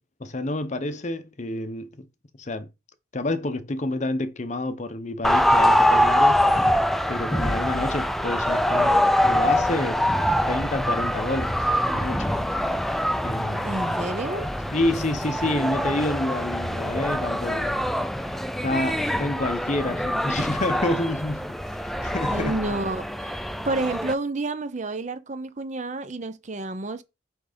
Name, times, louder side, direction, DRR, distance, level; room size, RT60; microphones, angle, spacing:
voice 1, 0.2-2.1 2.4-2.7 3.1-6.4 7.1-9.0 9.2-10.0 10.5-12.4 13.2-13.7 14.7-17.7 18.6-21.5 21.8-22.6, left 2 dB, 40° left, 0.7 m, -28 dB
sound 1, 5.2-24.1, equal, ahead, 0.4 m, -24 dB
voice 2, 13.6-14.5 22.3-23.4 23.6-27.0, right 2 dB, 40° right, 0.6 m, -30 dB
5.9 x 5.2 x 5.1 m
head